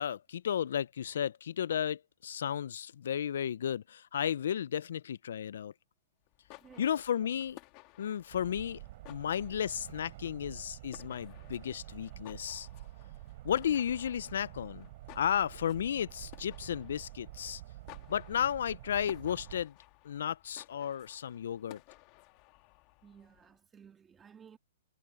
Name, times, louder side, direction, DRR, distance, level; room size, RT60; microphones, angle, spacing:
voice 1, 0.0-5.7 6.8-7.6 8.0-8.8 9.1-12.7 13.4-14.9 15.2-17.6 18.1-19.7 20.0-21.8, left 9 dB, 65° left, 0.3 m, -33 dB
sound 1, 6.2-23.6, left 23 dB, 30° left, 1.9 m, -57 dB
voice 2, 6.6-7.4 23.0-24.6, right 7 dB, 10° right, 1.8 m, -57 dB
sound 2, 8.3-19.6, right 17 dB, 40° right, 4.2 m, -49 dB
hypercardioid pair, 155°, 0 cm